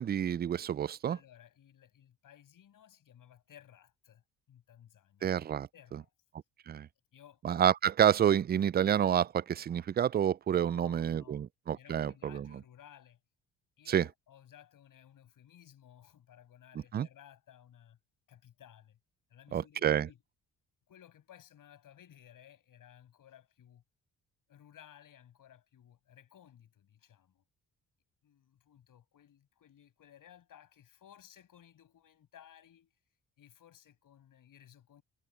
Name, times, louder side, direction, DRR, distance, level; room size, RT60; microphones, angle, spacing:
voice 1, 0.0-1.2 5.2-5.7 6.7-6.9 7.4-12.5 13.9-14.0 16.9-17.1 19.5-20.1, right 9 dB, 30° right, 0.3 m, -28 dB
voice 2, 1.1-4.2 4.5-5.3 5.7-6.1 7.1-7.4 10.5-11.5 11.7-13.2 13.8-18.0 18.3-19.0 19.3-20.2 20.9-23.8 24.5-27.4 28.2-32.9 33.4-35.0, left 10 dB, 65° left, 6.1 m, -58 dB
cardioid pair, 80°, 35 cm